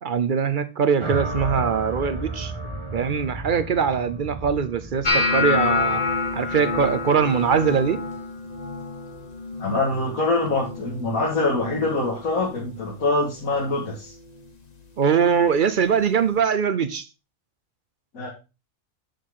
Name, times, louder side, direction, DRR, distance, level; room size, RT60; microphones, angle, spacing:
voice 1, 0.0-2.5 2.9-6.0 6.3-8.0 15.0-17.1, right 6 dB, 50° right, 0.7 m, -22 dB
sound 1, 1.0-9.3, right 2 dB, 25° right, 1.0 m, -34 dB
sound 2, 5.0-11.1 11.4-11.9 12.3-12.8 13.5-13.7 15.4-15.5, left 4 dB, 30° left, 1.0 m, -27 dB
voice 2, 9.6-14.1 18.1-18.3, left 2 dB, 85° left, 2.3 m, -24 dB
8.3 x 6.6 x 3.8 m
omnidirectional pair, 1.4 m